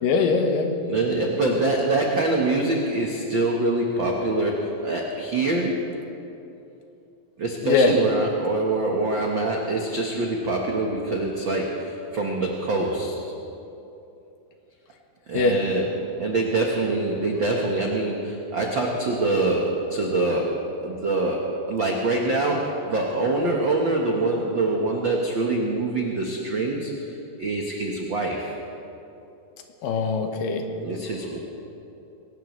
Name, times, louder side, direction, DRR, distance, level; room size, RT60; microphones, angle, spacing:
voice 1, 0.0-0.7 1.4-1.5 7.6-8.0 15.3-15.6 29.8-30.7, left 4 dB, 75° left, 4 dB, 2.7 m, -22 dB
voice 2, 0.9-5.8 7.4-13.2 15.3-28.6 30.8-31.4, right 2 dB, 85° right, -1 dB, 1.0 m, -25 dB
22.0 x 18.0 x 3.1 m, 2.8 s
omnidirectional pair, 4.1 m